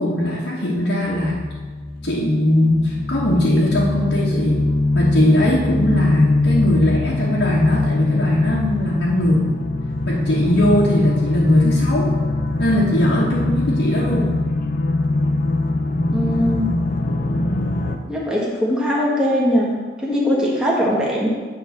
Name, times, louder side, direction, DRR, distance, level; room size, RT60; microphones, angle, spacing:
voice 1, 0.0-1.4 2.0-4.7 4.9-9.5 10.1-12.1 12.6-14.4, left 1 dB, 65° left, -6 dB, 1.3 m, -19 dB
sound 1, 1.1-18.0, left 2 dB, 45° left, 0.6 m, -22 dB
voice 2, 16.1-16.7 18.1-21.3, equal, 5° right, -5 dB, 1.5 m, -20 dB
9.5 x 3.7 x 6.5 m, 1.5 s
head